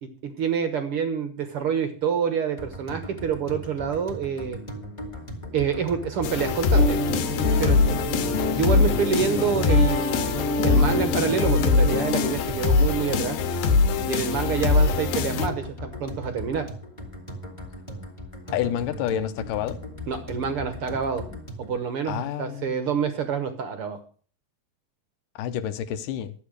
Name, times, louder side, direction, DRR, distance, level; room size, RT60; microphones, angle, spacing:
voice 1, 0.0-4.6 5.5-7.0 7.6-8.0 8.5-13.4 14.0-16.7 20.1-21.3 21.6-24.0, right 6 dB, 70° right, 1.3 m, -27 dB
sound 1, 2.6-21.8, left 1 dB, 10° left, 1.9 m, -38 dB
sound 2, 6.2-15.5, left 4 dB, 90° left, 3.0 m, -23 dB
Guitar, 6.7-12.4, left 2 dB, 55° left, 0.8 m, -28 dB
voice 2, 18.5-19.8 22.1-22.7 25.4-26.3, left 10 dB, 75° left, 2.3 m, -28 dB
12.5 x 8.4 x 6.4 m
omnidirectional pair, 4.1 m